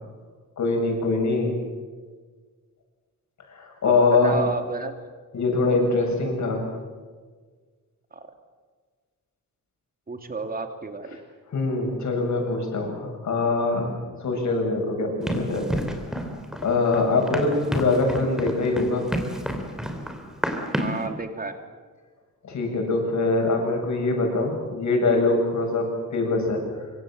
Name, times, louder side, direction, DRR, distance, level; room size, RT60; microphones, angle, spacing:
voice 1, 0.6-1.5 3.5-4.3 5.3-6.6 11.5-13.9 14.2-15.7 16.6-19.0 22.4-26.6, left 3 dB, 55° left, 2 dB, 7.7 m, -23 dB
voice 2, 3.8-5.0 8.1-8.3 10.1-11.2 20.7-21.6, right 3 dB, 25° right, 6 dB, 2.6 m, -31 dB
Run, 15.3-21.1, equal, ahead, 3.2 m, -30 dB
25.5 x 25.0 x 7.7 m, 1.5 s
wide cardioid pair, 145°, 33 cm